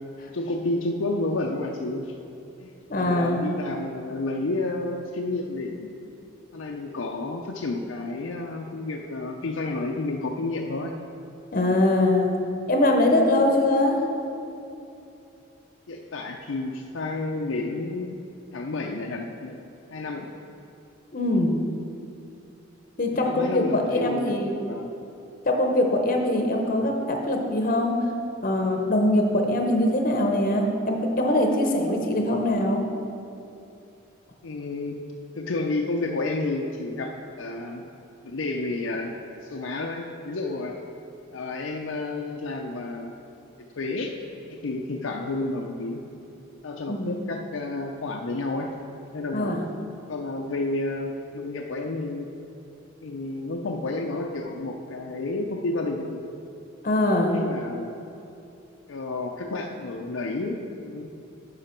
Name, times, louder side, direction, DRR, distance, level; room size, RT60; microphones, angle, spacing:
voice 1, 0.3-2.1 2.6-5.9 6.5-10.9 15.9-18.2 18.5-19.6 19.9-20.3 23.2-24.4 24.7-24.9 34.4-35.0 35.3-37.9 38.2-39.1 39.4-40.8 41.3-43.1 43.8-44.1 44.5-46.1 46.6-48.7 49.0-49.6 50.1-52.3 53.0-56.2 57.3-57.9 58.9-61.1, left 2 dB, 70° left, 1 dB, 0.5 m, -30 dB
voice 2, 2.9-3.5 11.5-12.4 12.7-14.0 21.1-21.6 23.0-24.5 25.5-28.0 28.4-32.8 46.9-47.2 49.3-49.6 56.8-57.4, left 1 dB, 40° left, 2 dB, 0.8 m, -22 dB
11.0 x 5.6 x 4.4 m, 2.7 s
head